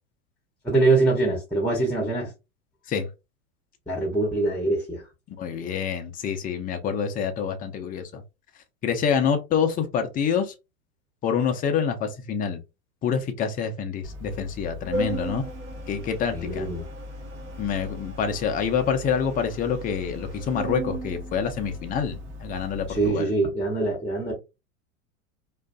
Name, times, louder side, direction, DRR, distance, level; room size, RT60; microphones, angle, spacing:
voice 1, 0.6-2.3 3.9-5.0 16.3-16.9 22.9-24.3, right 2 dB, 5° left, 0.8 m, -24 dB
voice 2, 5.4-8.2 8.8-10.5 11.2-12.6 13.0-15.4 15.9-16.7 17.6-23.3, left 7 dB, 20° left, 0.5 m, -27 dB
Organ, 14.0-23.1, right 1 dB, 40° right, 1.0 m, -36 dB
2.5 x 2.4 x 2.2 m
hypercardioid pair, 95°, 43 cm